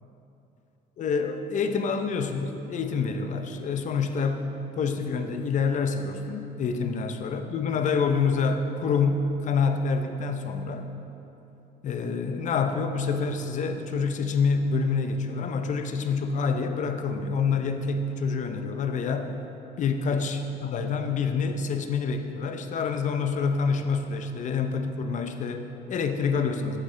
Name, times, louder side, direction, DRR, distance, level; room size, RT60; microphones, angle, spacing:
voice 1, 1.0-4.4 4.7-10.9 11.8-19.3 19.8-26.8, left 5 dB, 45° left, 7 dB, 0.6 m, -27 dB
8.4 x 8.1 x 3.2 m, 2.9 s
cardioid pair, 110°, 17 cm